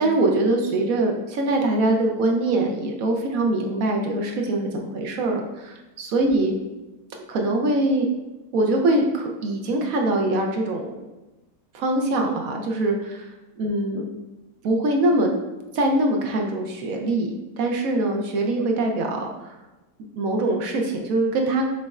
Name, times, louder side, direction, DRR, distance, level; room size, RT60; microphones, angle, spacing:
voice 1, 0.0-6.5 7.3-8.1 8.5-10.9 11.7-13.3 13.6-14.1 14.6-15.3 15.7-19.5 20.2-21.7, right 2 dB, 70° right, 2 dB, 1.0 m, -23 dB
6.2 x 3.2 x 2.3 m, 1.1 s
omnidirectional pair, 1.7 m